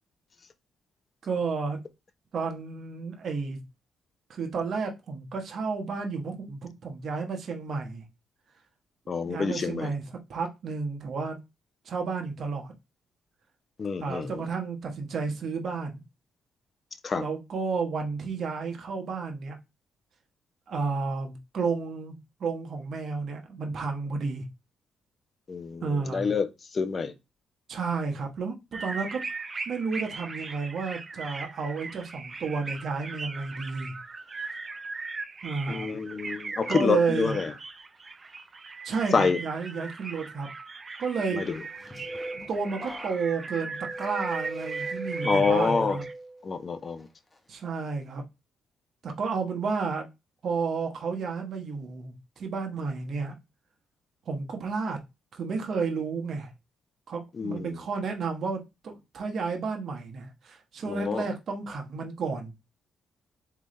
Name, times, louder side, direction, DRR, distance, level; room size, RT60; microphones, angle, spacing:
voice 1, 1.2-1.8 2.3-3.6 4.3-8.0 9.2-11.4 11.8-12.7 14.0-16.0 17.2-19.6 20.7-22.1 22.4-24.4 25.8-26.3 27.7-29.2 29.7-33.9 35.4-36.0 36.7-37.4 38.8-40.5 41.0-41.4 42.5-46.0 47.5-48.2 49.0-50.1 50.4-53.4 54.3-55.0 55.3-56.5 57.1-62.5, right 4 dB, 55° right, 1.1 m, -31 dB
voice 2, 9.1-9.9 13.8-14.3 17.0-17.2 25.5-25.8 26.1-26.5 26.7-27.1 35.7-37.5 39.1-39.4 41.3-41.6 45.2-46.0 46.4-47.1 57.4-57.7 60.9-61.2, left 5 dB, 40° left, 0.7 m, -27 dB
sound 1, 28.7-46.1, right 4 dB, 30° right, 0.6 m, -39 dB
sound 2, 41.5-46.5 47.0-47.4, right 1 dB, 15° left, 1.1 m, -38 dB
3.8 x 3.5 x 3.2 m
cardioid pair, 90°, 0 cm